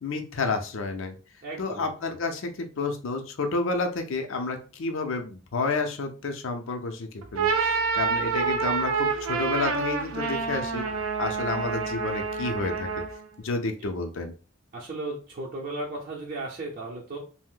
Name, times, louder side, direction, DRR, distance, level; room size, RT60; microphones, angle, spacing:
voice 1, 0.0-1.2 1.6-10.9 11.2-12.9 13.4-14.3, left 3 dB, 70° left, 5 dB, 0.5 m, -30 dB
voice 2, 1.4-2.1 10.5-10.7 13.8-13.9 14.7-17.2, right 2 dB, 45° right, -3 dB, 0.7 m, -36 dB
sound 1, 7.2-13.2, right 5 dB, 85° right, 0.5 m, -27 dB
2.6 x 2.1 x 3.6 m, 0.37 s
head